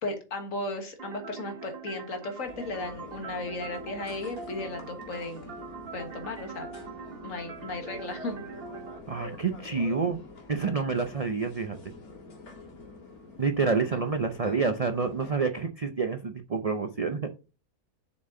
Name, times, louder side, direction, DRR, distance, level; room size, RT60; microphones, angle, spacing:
voice 1, 0.0-6.7 7.2-8.4 13.9-14.0, left 2 dB, 60° left, 5 dB, 1.8 m, -36 dB
sound 1, 1.0-9.0, right 5 dB, 45° right, 1.1 m, -43 dB
sound 2, 2.4-15.4, left 3 dB, 75° left, 2.4 m, -46 dB
voice 2, 9.1-10.2 10.5-11.8 13.4-17.2, right 4 dB, 70° right, 7 dB, 0.3 m, -28 dB
7.3 x 6.1 x 3.7 m, 0.32 s
omnidirectional pair, 1.6 m